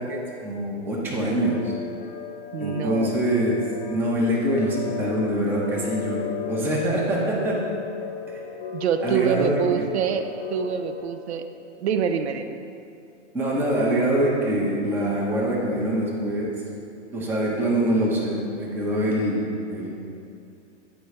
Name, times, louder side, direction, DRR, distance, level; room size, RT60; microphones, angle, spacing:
voice 1, 0.0-1.7 2.6-3.6 3.9-7.5 8.3-8.4 9.0-9.6 13.3-16.5 17.1-19.9, right 1 dB, 5° right, -5 dB, 0.7 m, -24 dB
sound 1, 1.4-11.0, left 6 dB, 35° left, 0.9 m, -35 dB
voice 2, 2.5-3.2 8.7-11.4 11.8-12.5, right 7 dB, 65° right, 9 dB, 0.5 m, -26 dB
7.9 x 4.7 x 3.2 m, 2.6 s
hypercardioid pair, 120°, 36 cm